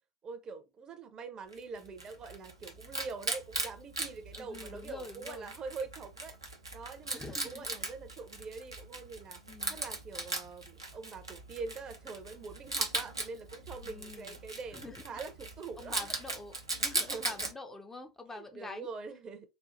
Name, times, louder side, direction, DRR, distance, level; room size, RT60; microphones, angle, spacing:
voice 1, 0.2-6.4 6.7-9.4 9.7-16.2 17.0-17.5 18.3-19.5, right 4 dB, 30° right, 0.7 m, -44 dB
Wild animals, 1.5-17.5, right 2 dB, 85° right, 0.7 m, -39 dB
voice 2, 4.3-5.5 7.1-7.7 9.5-9.8 13.8-14.4 14.7-15.0 15.8-18.9, left 3 dB, 15° left, 0.6 m, -46 dB
4.3 x 2.4 x 2.5 m
figure-of-eight pair, 75°, 2 cm